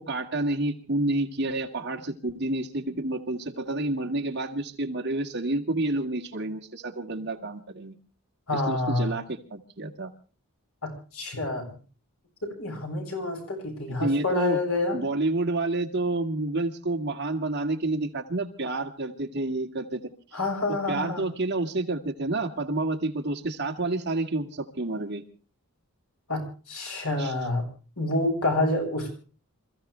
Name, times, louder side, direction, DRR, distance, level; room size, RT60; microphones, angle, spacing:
voice 1, 0.0-8.0 8.5-10.1 14.0-14.6 14.9-20.0 20.7-25.2 27.2-27.3, right 2 dB, 50° right, 4 dB, 2.1 m, -29 dB
voice 2, 8.5-9.1 10.8-11.7 12.4-15.0 20.3-21.2 26.3-27.6 28.0-29.1, left 2 dB, 85° left, 2 dB, 7.3 m, -28 dB
27.5 x 15.5 x 3.4 m, 0.38 s
head